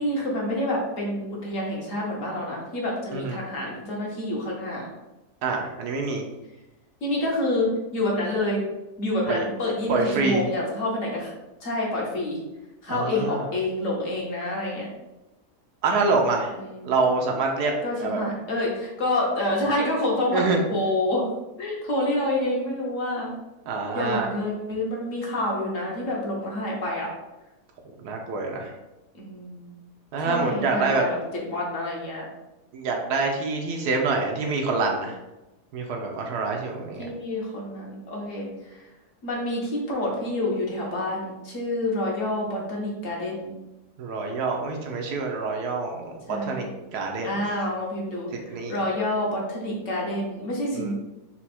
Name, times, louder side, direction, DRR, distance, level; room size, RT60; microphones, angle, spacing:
voice 1, 0.0-4.9 7.0-8.6 9.0-11.3 11.6-12.4 12.8-14.9 16.5-16.9 17.8-20.4 20.7-21.3 21.6-23.3 23.9-27.1 29.1-29.7 30.2-31.1 31.5-32.3 37.0-38.8 39.2-43.5 46.3-46.7 47.2-50.9, left 1 dB, 55° left, -2 dB, 1.3 m, -28 dB
voice 2, 5.4-6.2 9.3-9.5 9.9-10.4 12.9-13.5 15.8-16.5 16.8-17.7 18.0-18.2 20.3-20.6 23.7-24.3 28.0-28.7 30.1-31.1 32.7-35.2 35.7-37.1 44.0-46.7 46.9-47.4 48.5-48.8 50.7-50.9, right 3 dB, 80° right, 2 dB, 1.2 m, -26 dB
4.4 x 2.3 x 4.2 m, 1.0 s
omnidirectional pair, 1.7 m